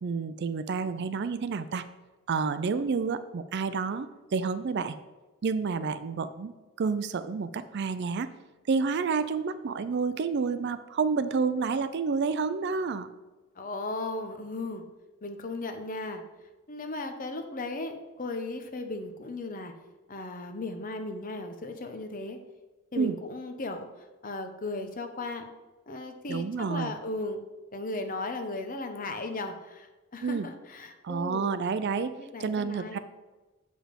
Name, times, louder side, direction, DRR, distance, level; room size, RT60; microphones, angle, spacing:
voice 1, 0.0-1.8 2.3-5.0 5.4-8.3 8.7-13.1 23.0-23.2 26.3-26.9 30.2-30.5 31.0-32.1 32.4-33.0, right 5 dB, 50° right, 13 dB, 0.4 m, -29 dB
voice 2, 13.5-14.8 15.2-16.2 16.7-19.7 20.1-22.4 22.9-25.5 25.9-27.4 27.7-31.5 32.2-33.0, left 2 dB, 40° left, 6 dB, 0.8 m, -36 dB
7.4 x 5.1 x 5.1 m, 1.2 s
head